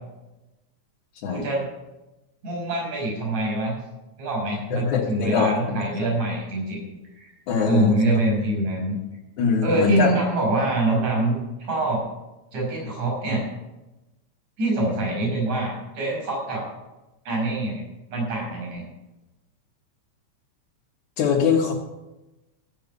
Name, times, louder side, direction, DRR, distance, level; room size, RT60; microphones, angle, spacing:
voice 1, 1.3-1.6 2.4-3.8 4.2-6.8 7.1-7.3 7.6-8.9 9.6-12.0 12.5-13.4 14.6-16.6 17.2-17.8 18.1-18.8, right 2 dB, 70° right, -3 dB, 6.7 m, -24 dB
voice 2, 4.7-5.9 7.5-8.0 9.4-10.1 21.2-21.7, left 6 dB, 85° left, -7 dB, 3.0 m, -22 dB
14.5 x 5.4 x 9.5 m, 1.0 s
omnidirectional pair, 3.4 m